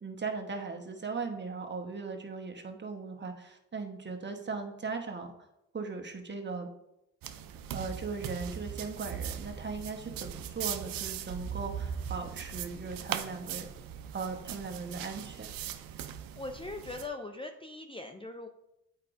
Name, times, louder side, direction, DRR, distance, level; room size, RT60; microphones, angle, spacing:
voice 1, 0.0-5.3 5.7-6.7 7.7-13.7 14.1-15.5, right 4 dB, 30° right, 3 dB, 1.1 m, -38 dB
sound 1, 7.2-17.1, right 9 dB, 85° right, 0.5 m, -39 dB
voice 2, 16.4-18.5, left 2 dB, 15° left, 4 dB, 0.5 m, -40 dB
8.1 x 4.8 x 2.5 m, 0.85 s
cardioid pair, 65°, 34 cm